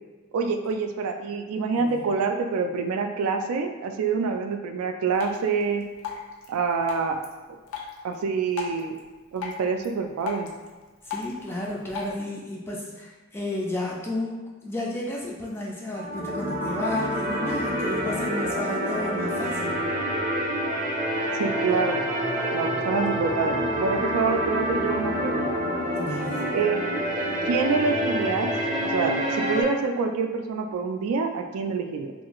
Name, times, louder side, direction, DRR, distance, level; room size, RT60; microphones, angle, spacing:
voice 1, 0.3-5.8 6.5-7.2 8.0-9.0 9.3-10.5 21.3-22.0 22.5-25.6 26.5-26.8 27.5-28.5 28.8-32.1, right 5 dB, 85° right, 5 dB, 0.3 m, -26 dB
Drip, 5.1-12.1, left 7 dB, 75° left, 0.5 m, -39 dB
voice 2, 11.1-19.8 25.9-26.6, left 1 dB, 10° left, -3 dB, 0.3 m, -32 dB
sound 1, 15.9-29.6, right 1 dB, 35° right, 0.6 m, -27 dB
2.5 x 2.3 x 2.9 m, 1.3 s
head